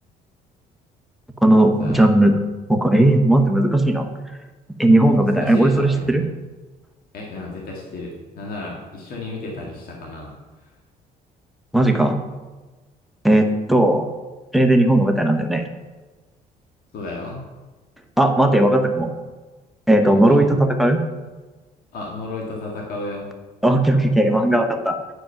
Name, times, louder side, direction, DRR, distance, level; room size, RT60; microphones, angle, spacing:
voice 1, 1.4-2.4 2.7-4.1 4.8-6.2 11.7-12.2 13.2-14.1 14.5-15.6 18.2-19.1 19.9-21.0 23.6-25.0, right 1 dB, ahead, 5 dB, 1.0 m, -16 dB
voice 2, 5.2-6.2 7.1-10.3 16.9-17.4 20.0-20.4 21.9-23.3, left 2 dB, 60° left, -1 dB, 1.8 m, -33 dB
9.2 x 5.2 x 5.7 m, 1.2 s
cardioid pair, 110°, 17 cm